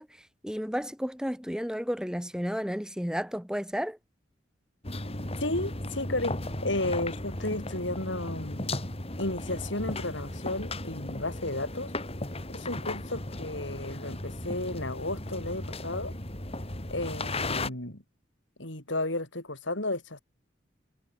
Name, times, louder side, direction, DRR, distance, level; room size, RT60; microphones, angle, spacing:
voice 1, 0.0-4.0, equal, 5° right, 4.7 m, -32 dB
sound 1, 4.8-17.7, left 2 dB, 35° left, 4.0 m, -36 dB
voice 2, 5.4-8.8 9.2-11.9 12.5-16.1 16.9-18.0 18.6-20.2, left 2 dB, 80° left, 7.4 m, -33 dB
head